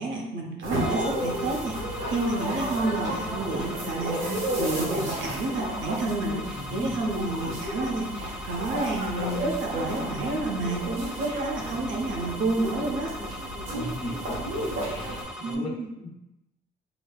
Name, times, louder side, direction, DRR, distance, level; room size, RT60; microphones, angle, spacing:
voice 1, 0.0-13.1 15.4-15.9, right 2 dB, 65° right, 0 dB, 0.8 m, -30 dB
sound 1, 0.6-15.2, right 1 dB, 85° right, 1.0 m, -33 dB
sound 2, 0.7-15.5, equal, 5° right, 0.4 m, -40 dB
voice 2, 6.5-6.9 13.7-15.7 16.0-16.1, left 1 dB, 25° left, -9 dB, 0.8 m, -37 dB
5.1 x 2.1 x 2.3 m, 0.90 s
cardioid pair, 90°, 20 cm